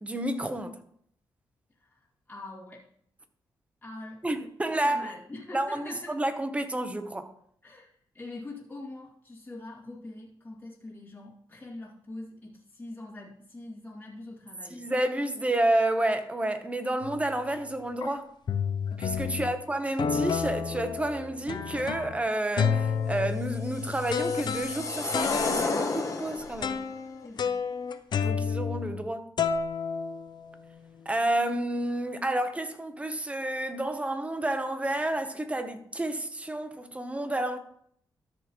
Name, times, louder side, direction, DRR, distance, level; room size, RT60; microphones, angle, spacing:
voice 1, 0.0-0.8 4.2-5.1 5.5-7.3 14.7-18.3 19.0-26.9 28.2-29.3 31.1-37.6, right 1 dB, 15° right, 1.0 m, -30 dB
voice 2, 1.8-2.8 3.8-4.2 4.8-6.1 7.6-14.8 19.2-20.2 27.2-27.6, left 2 dB, 20° left, 2.1 m, -44 dB
sound 1, 17.0-17.4 18.0-18.1 18.5-19.5 20.0-22.2 22.6-29.1 29.4-30.8, left 6 dB, 60° left, 0.6 m, -31 dB
sound 2, 23.5-26.7, left 3 dB, 40° left, 1.3 m, -32 dB
13.5 x 6.4 x 3.1 m
cardioid pair, 90°, 9 cm